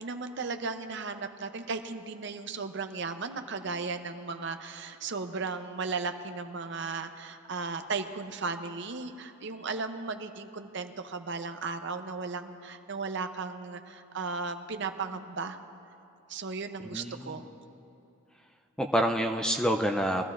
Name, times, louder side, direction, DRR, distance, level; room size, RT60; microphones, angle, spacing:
voice 1, 0.0-15.6 16.3-17.5, right 4 dB, 55° right, 7 dB, 0.6 m, -36 dB
voice 2, 16.9-17.4 18.8-20.3, equal, 5° left, 4 dB, 0.4 m, -27 dB
22.0 x 14.5 x 2.5 m, 2.7 s
head